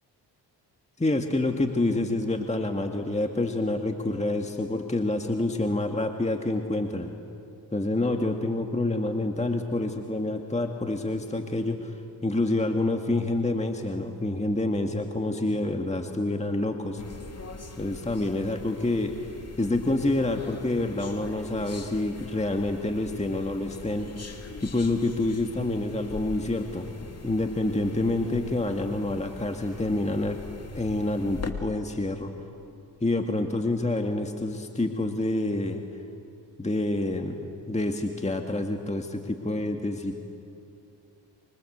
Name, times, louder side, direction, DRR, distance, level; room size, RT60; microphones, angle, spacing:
voice 1, 1.0-7.1 7.7-17.0 17.8-19.1 19.6-24.1 24.6-30.4 30.7-32.3 33.0-35.8 36.6-40.2, left 2 dB, 15° left, 4 dB, 2.0 m, -27 dB
sound 1, 17.0-31.5, left 3 dB, 35° left, 2.8 m, -43 dB
25.0 x 24.5 x 8.1 m, 2.7 s
supercardioid pair, 60°, 45 cm